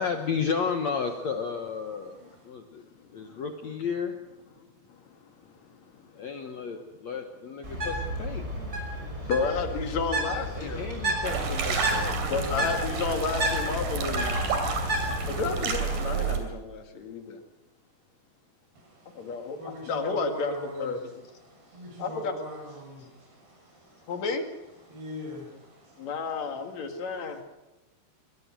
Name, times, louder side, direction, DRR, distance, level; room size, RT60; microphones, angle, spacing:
voice 1, 0.0-2.2 2.4-2.8 3.1-4.2 6.1-8.7 9.3-9.5 10.6-12.8, left 6 dB, 65° left, 5 dB, 1.7 m, -33 dB
voice 2, 2.1-2.5 18.8-20.9 21.4-24.1 24.9-26.1 27.0-27.1, equal, 75° right, 1 dB, 9.1 m, -43 dB
Bird, 7.6-15.4, right 1 dB, 15° right, 5.7 m, -32 dB
voice 3, 9.2-10.9 12.3-14.4 15.3-17.4 19.2-21.3 22.0-22.4 24.1-24.5 26.0-27.4, left 4 dB, 50° left, 5 dB, 2.8 m, -31 dB
sound 1, 11.2-16.4, right 4 dB, 55° right, 4.4 m, -30 dB
23.0 x 21.0 x 6.3 m, 1.0 s
omnidirectional pair, 4.7 m